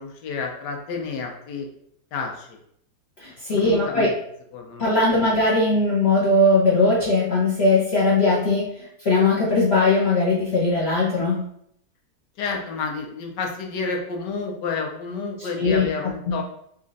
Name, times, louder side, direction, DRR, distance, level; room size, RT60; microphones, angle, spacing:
voice 1, 0.0-1.7 2.1-2.6 3.5-4.2 4.5-5.0 12.4-16.4, left 4 dB, 80° left, 2 dB, 1.4 m, -30 dB
voice 2, 3.2-4.1 4.8-11.4 15.6-15.9 16.3-16.4, left 2 dB, 50° left, -6 dB, 0.9 m, -20 dB
4.1 x 2.5 x 3.9 m, 0.72 s
omnidirectional pair, 1.8 m